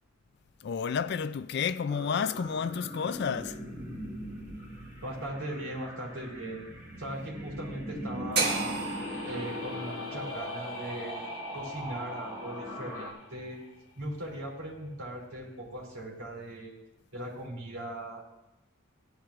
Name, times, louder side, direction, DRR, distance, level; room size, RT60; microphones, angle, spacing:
voice 1, 0.6-3.6, left 6 dB, 50° left, 0.3 m, -31 dB
sound 1, 1.9-13.1, equal, 10° right, 1.9 m, -41 dB
voice 2, 5.0-6.6 7.0-8.8 9.3-11.2 11.5-13.6 14.0-16.7 17.1-18.2, right 1 dB, 75° right, 3.7 m, -39 dB
sound 2, 8.3-12.5, right 4 dB, 50° right, 1.6 m, -35 dB
sound 3, 8.6-14.4, left 2 dB, 80° left, 1.5 m, -45 dB
16.0 x 10.5 x 2.4 m
head